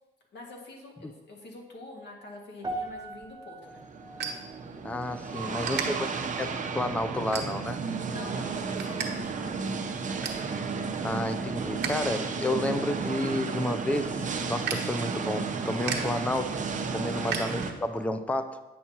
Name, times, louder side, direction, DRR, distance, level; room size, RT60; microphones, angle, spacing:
voice 1, 0.3-3.8 5.3-6.2 8.1-9.8 17.1-17.4, left 2 dB, 60° left, -1 dB, 1.9 m, -46 dB
sound 1, 2.6-7.0 7.3-7.7 8.3-8.4, right 2 dB, 20° right, 1.1 m, -42 dB
sound 2, 3.1-5.1 5.6-5.9 6.4-6.7 7.3-7.9 8.3-9.1 9.4-9.5 9.8-10.5 10.9-12.0 12.3-18.1, right 6 dB, 60° right, 1.2 m, -37 dB
sound 3, 3.7-17.7, right 5 dB, 40° right, 0.8 m, -33 dB
voice 2, 4.8-6.1 6.4-7.8 10.4-10.5 11.0-14.1 14.5-16.6 16.9-18.6, left 1 dB, 5° left, 10 dB, 0.4 m, -31 dB
9.2 x 6.0 x 2.8 m, 1.1 s
cardioid pair, 90°, 20 cm